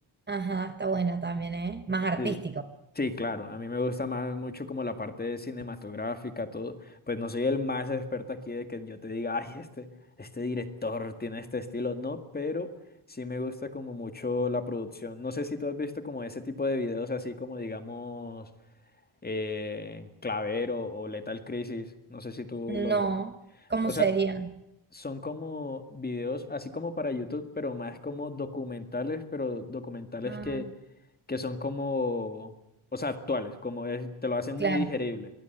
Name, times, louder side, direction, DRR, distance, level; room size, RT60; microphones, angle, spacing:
voice 1, 0.3-2.5 22.7-23.3 23.7-24.5 30.3-30.6 34.6-34.9, right 4 dB, 20° right, 10 dB, 1.1 m, -29 dB
voice 2, 3.0-9.9 10.2-12.7 13.1-18.5 19.2-23.0 23.8-24.1 24.9-30.6 31.3-32.5 32.9-35.3, left 3 dB, 20° left, 9 dB, 2.0 m, -33 dB
24.0 x 19.5 x 8.0 m, 0.87 s
wide cardioid pair, 150°, 49 cm